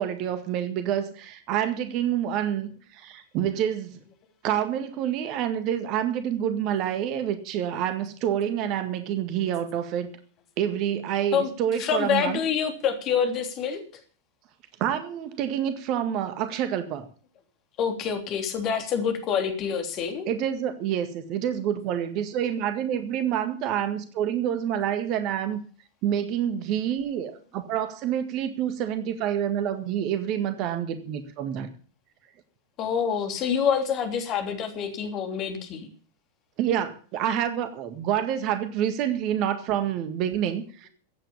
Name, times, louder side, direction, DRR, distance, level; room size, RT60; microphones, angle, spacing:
voice 1, 0.0-4.0 4.4-10.1 10.6-12.4 14.8-17.0 20.3-25.6 26.0-31.7 36.6-40.9, right 10 dB, 40° right, 10 dB, 1.8 m, -27 dB
voice 2, 11.8-13.8 17.8-20.2 32.8-35.9, left 7 dB, 35° left, 5 dB, 3.2 m, -26 dB
15.0 x 9.2 x 7.0 m, 0.42 s
figure-of-eight pair, 90°, 0 cm